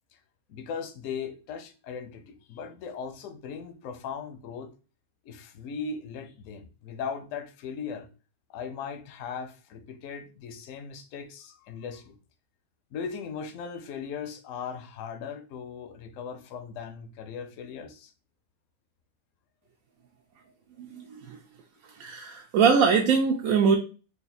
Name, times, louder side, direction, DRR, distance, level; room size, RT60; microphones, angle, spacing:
voice 1, 0.5-4.7 5.2-8.1 8.5-12.2 12.9-18.1, left 6 dB, 70° left, 0.9 m, -38 dB
voice 2, 20.8-21.4 22.0-23.8, right 6 dB, 70° right, 0.9 m, -23 dB
3.5 x 2.4 x 3.9 m
omnidirectional pair, 1.6 m